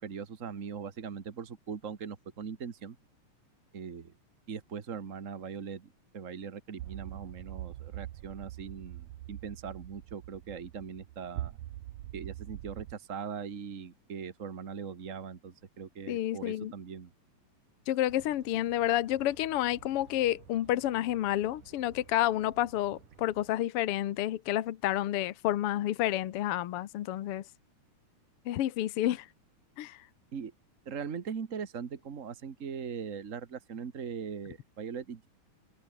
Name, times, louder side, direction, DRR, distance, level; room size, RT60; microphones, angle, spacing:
voice 1, 0.0-3.0 3.7-4.1 4.5-11.5 12.1-17.1 30.3-30.5 30.8-35.3, right 6 dB, 50° right, 0.9 m, -40 dB
sound 1, 6.8-12.9, right 14 dB, 70° right, 1.9 m, -43 dB
voice 2, 16.1-16.7 17.9-27.4 28.4-29.3 29.8-30.0, left 13 dB, 65° left, 1.5 m, -30 dB
sound 2, 18.1-23.5, right 7 dB, 85° right, 4.8 m, -56 dB
omnidirectional pair, 3.6 m